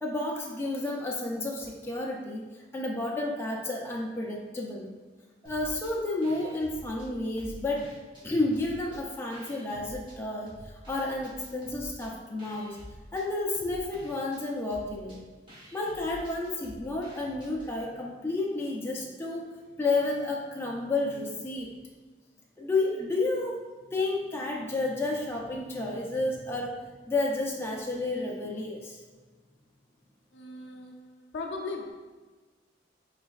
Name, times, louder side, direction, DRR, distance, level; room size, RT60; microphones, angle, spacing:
voice 1, 0.0-4.9 5.4-7.9 8.2-10.6 10.9-12.8 13.1-15.2 15.7-19.5 19.8-21.7 22.6-23.6 23.9-29.0, left 2 dB, 15° left, 0.4 m, -31 dB
sound 1, 5.4-5.9 6.2-8.2 8.5-10.2 10.5-17.7, equal, 25° right, 1.0 m, -48 dB
voice 2, 30.3-31.9, left 3 dB, 70° left, 0.5 m, -38 dB
4.3 x 3.2 x 2.3 m
head